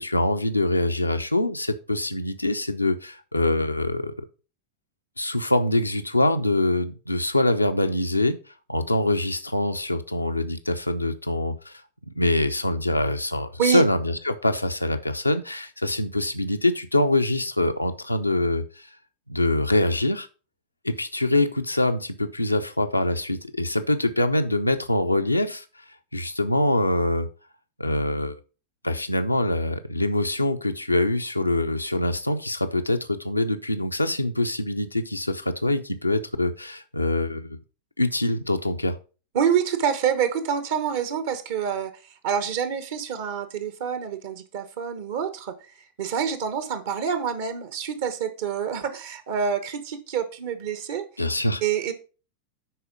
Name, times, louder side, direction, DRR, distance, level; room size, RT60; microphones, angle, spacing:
voice 1, 0.0-4.3 5.2-8.4 8.7-11.8 12.2-18.9 19.3-20.3 20.8-25.6 26.1-27.3 27.8-28.3 28.8-37.6 38.0-39.0 51.2-51.6, left 1 dB, 85° left, 8 dB, 0.7 m, -24 dB
voice 2, 39.3-51.0 51.6-51.9, right 7 dB, 55° right, 11 dB, 1.0 m, -27 dB
10.0 x 4.3 x 5.1 m, 0.35 s
figure-of-eight pair, 90°, 0 cm